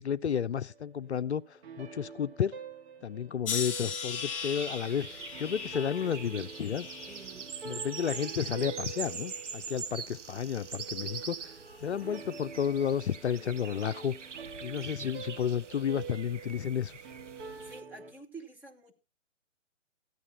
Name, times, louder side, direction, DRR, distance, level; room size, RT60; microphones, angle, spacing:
voice 1, 0.0-2.6 3.0-6.9 7.6-11.5 11.8-14.1 14.6-17.0, left 8 dB, 65° left, 0.5 m, -32 dB
sound 1, 0.7-18.1, right 5 dB, 55° right, 2.7 m, -47 dB
sound 2, 3.5-8.6 9.0-9.7 10.5-10.8, left 6 dB, 25° left, 0.8 m, -40 dB
sound 3, 4.4-17.8, right 6 dB, 75° right, 0.8 m, -43 dB
voice 2, 7.1-7.5 17.6-18.9, right 3 dB, 5° right, 1.2 m, -49 dB
14.5 x 10.5 x 4.2 m
figure-of-eight pair, 135°, 37 cm